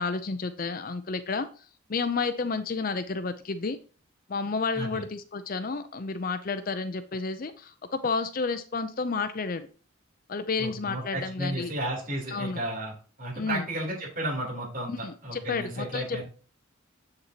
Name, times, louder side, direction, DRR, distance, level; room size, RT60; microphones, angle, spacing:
voice 1, 0.0-1.5 1.9-3.8 4.3-9.7 10.3-11.7 12.3-12.6 13.4-13.6 14.9-16.2, left 4 dB, 45° left, 11 dB, 0.5 m, -31 dB
voice 2, 10.6-12.9 13.2-16.2, right 1 dB, 45° right, -3 dB, 3.3 m, -33 dB
8.1 x 6.7 x 2.9 m, 0.38 s
head